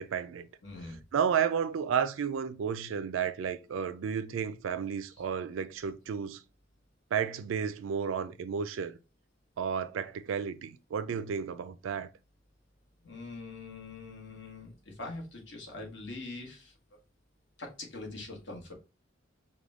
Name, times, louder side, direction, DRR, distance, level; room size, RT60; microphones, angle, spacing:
voice 1, 0.0-0.5 1.1-6.4 7.1-9.0 9.6-12.1, right 7 dB, 80° right, 0.4 m, -32 dB
voice 2, 0.6-1.0 13.0-16.7 17.6-18.7, left 2 dB, 65° left, 1.3 m, -43 dB
4.8 x 2.2 x 3.5 m
head